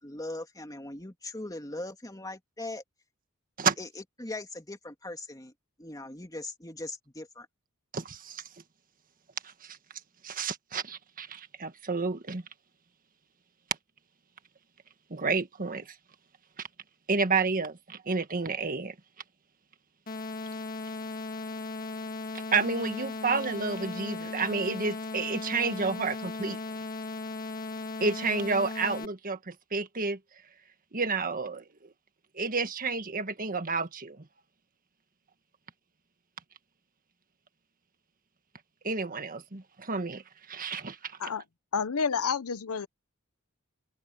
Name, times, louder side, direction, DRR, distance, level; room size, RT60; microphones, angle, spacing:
voice 1, 0.0-2.8 3.8-5.5 5.8-7.5, left 2 dB, 15° left, 3.0 m, -40 dB
voice 2, 7.9-8.4 9.6-9.8 10.2-12.4 15.1-15.9 17.1-18.9 22.5-26.6 28.0-30.2 30.9-31.6 32.3-34.2 38.8-40.2 40.5-41.3, right 4 dB, 40° right, 1.5 m, -30 dB
sound 1, 20.1-29.1, left 3 dB, 40° left, 2.1 m, -37 dB
voice 3, 41.7-42.9, left 6 dB, 90° left, 0.8 m, -29 dB
open air
head